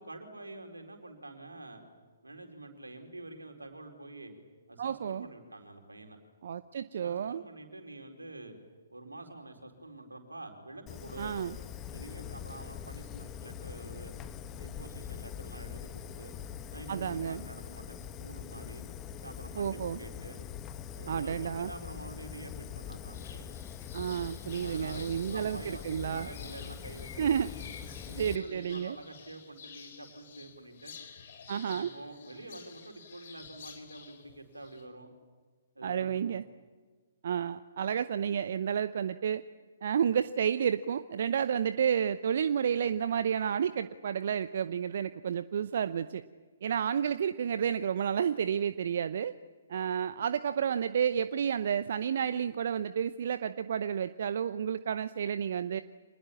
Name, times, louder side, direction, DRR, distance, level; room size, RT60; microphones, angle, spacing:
voice 1, 0.0-1.8 2.2-4.3 4.7-6.2 7.0-8.5 8.9-11.4 11.9-14.1 14.6-16.3 16.7-18.8 19.2-20.4 20.9-23.6 24.5-27.3 27.9-30.9 31.7-35.1 35.7-36.4, right 2 dB, 85° right, 4 dB, 4.6 m, -47 dB
voice 2, 4.8-5.3 6.4-7.4 11.2-11.6 16.9-17.4 19.6-20.0 21.1-21.7 23.9-26.3 27.2-27.5 28.2-29.0 31.5-31.9 35.8-36.4 37.2-39.4 39.8-46.2 46.6-49.3 49.7-55.8, right 8 dB, 55° right, 13 dB, 0.8 m, -31 dB
Fire, 10.9-28.4, left 8 dB, 20° left, 1.3 m, -43 dB
sound 1, 23.1-34.8, left 7 dB, 50° left, 4.3 m, -51 dB
26.5 x 20.5 x 8.8 m, 1.4 s
figure-of-eight pair, 125°, 0 cm